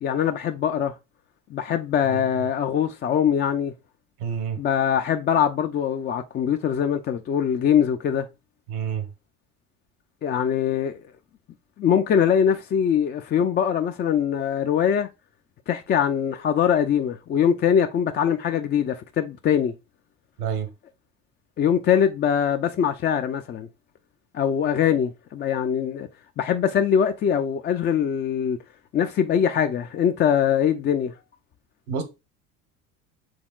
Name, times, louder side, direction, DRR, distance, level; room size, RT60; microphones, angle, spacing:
voice 1, 0.0-0.9 1.5-3.7 4.6-8.3 10.2-11.0 11.8-15.1 15.7-19.7 21.6-23.7 24.3-26.1 26.4-28.6 28.9-31.1, left 8 dB, 25° left, 0.3 m, -22 dB
voice 2, 4.2-4.6 8.7-9.1 20.4-20.7 31.9-32.0, right 7 dB, 85° right, 1.3 m, -28 dB
6.4 x 3.5 x 2.3 m
hypercardioid pair, 75°, 45 cm